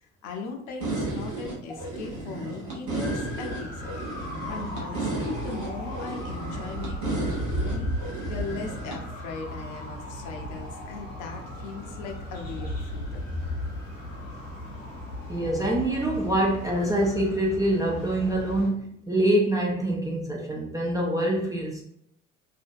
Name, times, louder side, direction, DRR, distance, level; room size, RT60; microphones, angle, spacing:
voice 1, 0.0-3.9 4.5-13.2, left 4 dB, 55° left, 2 dB, 0.6 m, -38 dB
sound 1, 0.8-9.0, right 2 dB, 55° right, 0.9 m, -33 dB
sound 2, 3.0-18.7, left 1 dB, 80° left, 0.9 m, -36 dB
voice 2, 15.3-21.8, right 1 dB, 10° right, -3 dB, 0.4 m, -25 dB
2.5 x 2.1 x 2.5 m, 0.73 s
figure-of-eight pair, 50°, 38 cm